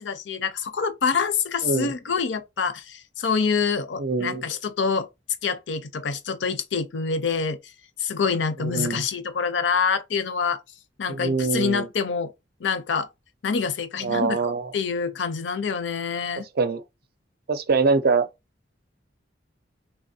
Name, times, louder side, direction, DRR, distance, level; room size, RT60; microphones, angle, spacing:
voice 1, 0.0-5.1 5.4-7.7 8.0-10.6 11.0-12.3 12.6-13.1 13.4-16.5, left 5 dB, 70° left, 0.5 m, -26 dB
voice 2, 4.0-4.4 8.6-9.0 11.1-11.9 14.0-14.7 16.6-16.8 17.5-18.3, right 4 dB, 55° right, 0.5 m, -24 dB
3.4 x 3.0 x 2.7 m
head